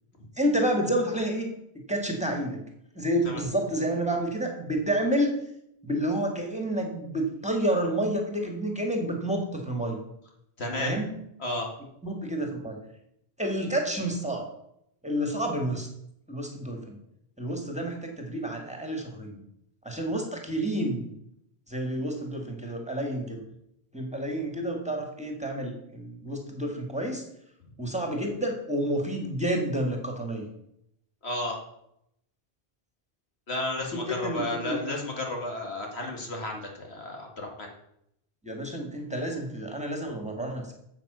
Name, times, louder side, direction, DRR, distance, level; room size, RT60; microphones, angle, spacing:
voice 1, 0.4-1.5 1.9-2.6 3.0-5.3 5.8-10.0 10.8-11.1 12.0-12.8 13.4-14.5 15.0-15.9 16.3-17.0 17.4-19.4 19.8-21.1 21.7-23.4 23.9-27.2 27.8-30.5 33.9-34.8 38.4-40.7, right 1 dB, 5° right, 1 dB, 2.0 m, -29 dB
voice 2, 10.6-10.9 11.4-11.7 31.2-31.6 33.5-37.7, left 2 dB, 85° left, 1 dB, 2.5 m, -32 dB
9.2 x 7.7 x 6.9 m, 0.77 s
omnidirectional pair, 1.1 m